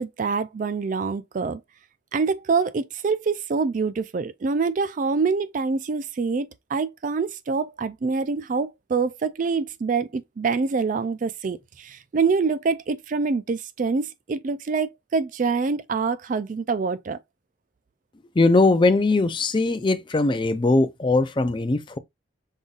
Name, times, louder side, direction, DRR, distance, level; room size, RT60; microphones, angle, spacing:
voice 1, 0.0-1.6 2.1-17.2, right 4 dB, 45° right, 0.4 m, -25 dB
voice 2, 18.4-22.0, left 2 dB, 25° left, 0.5 m, -20 dB
5.4 x 3.8 x 2.4 m
head